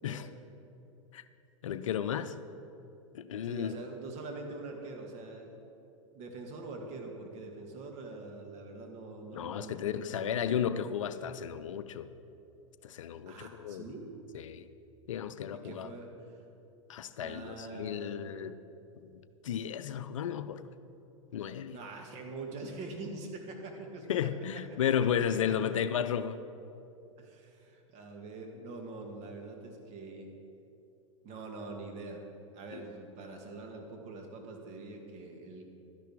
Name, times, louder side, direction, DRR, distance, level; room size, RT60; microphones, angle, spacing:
voice 1, 1.6-2.3 3.1-3.8 9.3-12.1 12.8-13.9 14.3-14.7 15.1-15.9 16.9-18.5 19.4-20.6 21.3-21.8 24.1-26.4 32.7-32.8, left 8 dB, 75° left, 12 dB, 0.5 m, -33 dB
voice 2, 3.4-5.6 6.1-10.6 13.3-14.1 15.6-16.4 17.2-18.2 21.7-24.3 24.7-24.8 27.2-30.3 31.2-32.2 32.5-35.6, right 3 dB, 40° right, 2 dB, 1.9 m, -44 dB
12.0 x 10.5 x 4.7 m, 2.9 s
hypercardioid pair, 100°, 17 cm